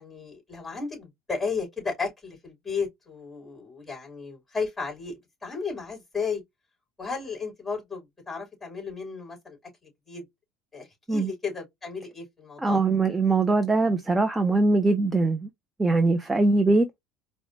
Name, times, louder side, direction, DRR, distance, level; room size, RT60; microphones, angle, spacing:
voice 1, 0.0-6.4 7.0-9.6 10.1-10.2 10.7-12.8, left 5 dB, 10° left, 2.8 m, -34 dB
voice 2, 12.6-15.5 15.8-16.9, right 3 dB, 10° right, 0.4 m, -22 dB
4.8 x 2.1 x 2.6 m
supercardioid pair, 120°, 0 cm